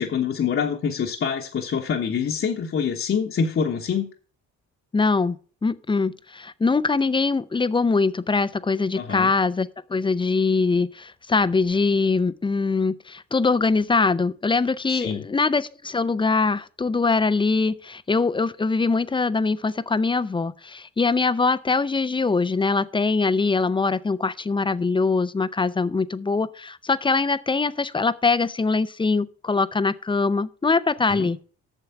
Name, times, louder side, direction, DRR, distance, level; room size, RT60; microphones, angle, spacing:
voice 1, 0.0-4.1 9.0-9.3 14.9-15.3 31.1-31.3, left 6 dB, 45° left, 1.1 m, -25 dB
voice 2, 4.9-5.4 5.6-31.4, left 4 dB, 15° left, 0.5 m, -23 dB
8.1 x 6.8 x 5.8 m
cardioid pair, 90°, 30 cm